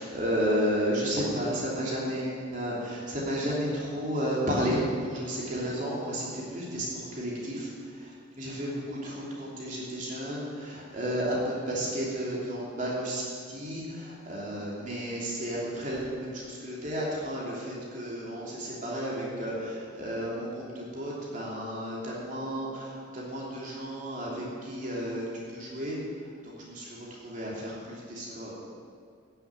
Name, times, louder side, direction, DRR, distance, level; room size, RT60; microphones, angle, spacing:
voice 1, 0.0-7.7 8.4-26.0 26.4-27.0 27.2-28.5, equal, 40° right, -5 dB, 3.1 m, -32 dB
15.0 x 7.1 x 9.2 m, 2.2 s
head